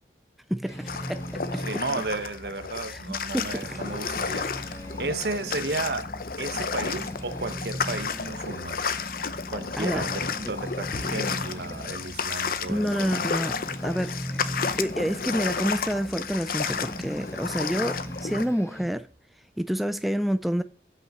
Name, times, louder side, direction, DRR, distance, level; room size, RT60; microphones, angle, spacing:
voice 1, 0.5-1.6 2.9-3.8 9.8-10.1 12.7-13.6 13.8-14.5 14.8-19.1 19.6-20.6, equal, ahead, 0.3 m, -28 dB
sound 1, 0.6-2.3 2.7-2.8 3.2-5.9 6.3-6.4 6.8-8.7 9.2-9.3 9.7-12.0 13.3-15.2 16.6-19.0, equal, 15° left, 1.7 m, -39 dB
sound 2, 0.9-18.4, left 5 dB, 50° left, 0.7 m, -32 dB
voice 2, 1.6-6.1 6.4-8.9 9.5-13.3, right 3 dB, 60° right, 1.0 m, -33 dB
Purr, 3.9-18.6, left 1 dB, 30° left, 1.3 m, -44 dB
8.5 x 5.5 x 6.0 m
head